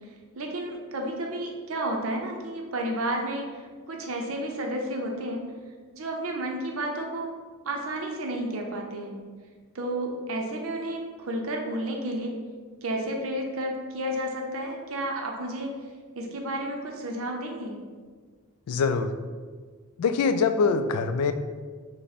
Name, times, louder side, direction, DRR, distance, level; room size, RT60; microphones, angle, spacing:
voice 1, 0.3-5.4 5.9-7.3 7.6-9.1 9.7-12.3 12.8-15.7 16.1-17.8, right 1 dB, 70° right, 1 dB, 0.6 m, -31 dB
voice 2, 18.7-19.1 20.0-21.3, left 5 dB, 90° left, 9 dB, 0.4 m, -23 dB
5.3 x 2.1 x 4.1 m, 1.5 s
head